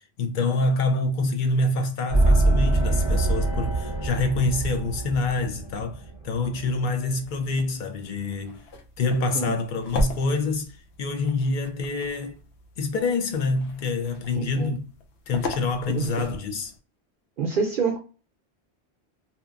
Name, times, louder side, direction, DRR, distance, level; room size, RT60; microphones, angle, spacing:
voice 1, 0.2-8.6 9.0-10.7 11.0-12.4 12.8-14.8 15.3-16.7, left 3 dB, 55° left, 0.6 m, -26 dB
sound 1, 2.1-6.8, right 2 dB, 25° left, 1.0 m, -24 dB
sound 2, 7.2-16.8, left 1 dB, 90° left, 0.9 m, -36 dB
voice 2, 14.3-14.8 15.9-16.3 17.4-18.0, right 5 dB, 60° right, 0.7 m, -27 dB
2.8 x 2.3 x 2.4 m
omnidirectional pair, 1.1 m